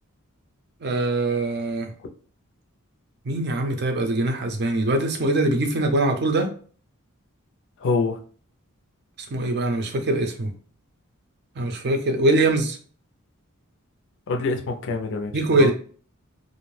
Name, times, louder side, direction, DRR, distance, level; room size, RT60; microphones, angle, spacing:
voice 1, 0.8-1.9 3.3-6.5 9.3-10.5 11.6-12.8 15.3-15.7, right 2 dB, 50° right, 4 dB, 0.5 m, -22 dB
voice 2, 7.8-8.2 14.3-15.7, left 3 dB, 60° left, 4 dB, 0.4 m, -25 dB
2.5 x 2.0 x 3.1 m, 0.43 s
head